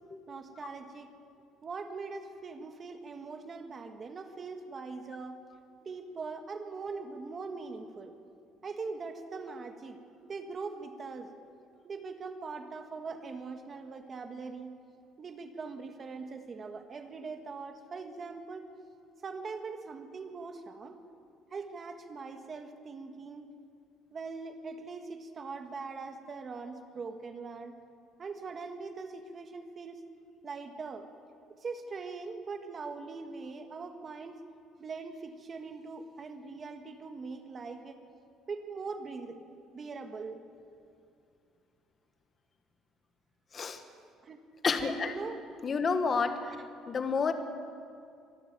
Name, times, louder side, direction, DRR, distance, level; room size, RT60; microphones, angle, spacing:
voice 1, 0.3-1.1 1.6-5.4 5.8-8.1 8.6-11.3 11.8-14.7 15.2-18.6 19.2-21.0 21.5-23.5 24.1-27.8 28.2-30.0 30.4-31.1 31.6-34.4 34.8-38.0 38.5-39.4 39.7-40.4 44.2-44.4 44.8-45.4, right 4 dB, 25° right, 7 dB, 1.6 m, -41 dB
voice 2, 44.6-45.1 45.6-46.5 46.9-47.3, left 5 dB, 25° left, 8 dB, 1.5 m, -29 dB
25.0 x 12.0 x 9.5 m, 2.4 s
cardioid pair, 160°, 0 cm